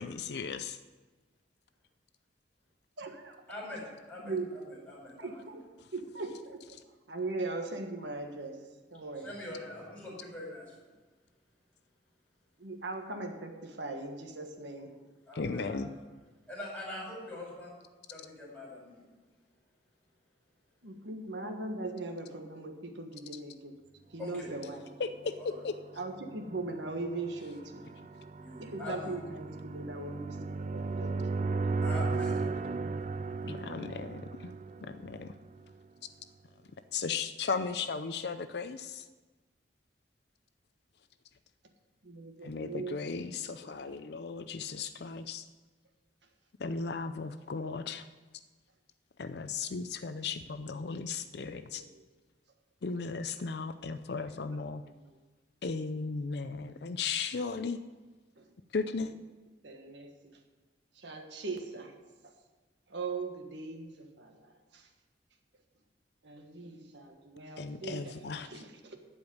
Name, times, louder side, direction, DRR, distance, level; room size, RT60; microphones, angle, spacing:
voice 1, 0.0-0.8 15.4-15.9 25.0-25.7 33.4-34.5 34.8-35.4 36.9-39.1 42.4-45.5 46.6-48.0 49.2-51.8 52.8-54.8 55.6-57.8 58.7-59.1 67.6-68.6, left 4 dB, 60° left, 10 dB, 0.5 m, -36 dB
voice 2, 3.0-3.4 4.2-4.5 5.2-5.6 5.9-6.6 7.1-8.6 8.9-9.3 12.6-14.9 20.8-23.8 24.1-24.8 26.0-28.0 28.6-31.5 42.0-43.0 43.6-43.8 44.3-44.4 47.6-47.7 49.8-49.9 51.4-52.0 53.8-53.9 56.5-56.7 58.4-58.5 59.6-60.4 60.9-61.9 62.2-62.3 62.9-64.9 66.2-69.0, right 3 dB, 75° right, 4 dB, 1.5 m, -40 dB
voice 3, 3.5-5.4 8.9-10.9 14.8-14.9 15.3-16.0 16.4-17.7 18.1-19.2 24.2-24.6 25.4-25.6 28.3-29.2 30.8-31.0 31.6-33.3, left 1 dB, 10° left, -5 dB, 5.1 m, -44 dB
sound 1, 24.9-35.7, right 3 dB, 40° right, 0.4 m, -36 dB
15.0 x 5.2 x 9.5 m, 1.3 s
head